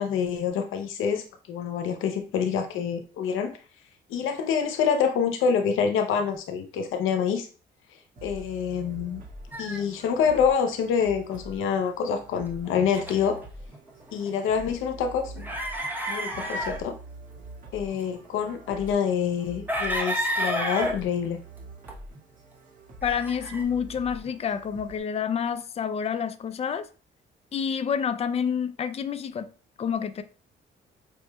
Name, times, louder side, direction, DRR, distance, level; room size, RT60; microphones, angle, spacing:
voice 1, 0.0-3.6 4.1-7.5 8.2-9.2 9.6-13.4 14.1-15.5 16.1-16.9 17.7-21.4, left 7 dB, 90° left, 0.7 m, -26 dB
sound 1, 8.2-25.0, right 2 dB, 40° right, 1.7 m, -45 dB
sound 2, 9.5-9.8 10.3-10.8 12.3-13.4 13.7-14.7 15.4-16.8 17.8-18.4 19.7-21.0 21.9-22.0 23.0-23.6, equal, 10° right, 0.9 m, -30 dB
voice 2, 23.0-26.9 27.5-29.5 29.8-30.2, left 7 dB, 30° left, 0.4 m, -28 dB
5.2 x 3.0 x 2.2 m
cardioid pair, 90°, 20 cm